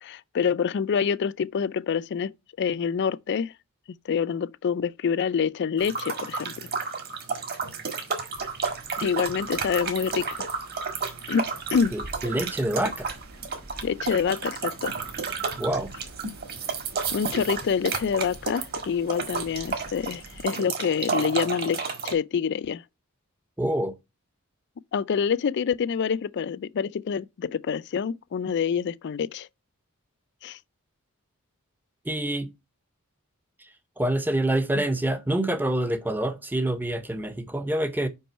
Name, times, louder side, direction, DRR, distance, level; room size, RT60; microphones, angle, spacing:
voice 1, 0.0-2.3 2.6-3.5 4.0-6.7 9.0-10.5 11.3-12.0 13.8-15.0 17.1-22.8 24.9-29.5 30.4-30.6 34.8-34.9, left 6 dB, 50° left, 0.3 m, -27 dB
sound 1, 5.8-22.1, right 5 dB, 45° right, 1.6 m, -32 dB
Traffic noise roadway noise, 8.3-20.4, right 1 dB, 85° right, 2.0 m, -48 dB
voice 2, 11.9-13.1 15.6-15.9 23.6-23.9 32.1-32.5 34.0-38.1, right 1 dB, 10° right, 0.6 m, -26 dB
5.4 x 5.4 x 4.3 m
head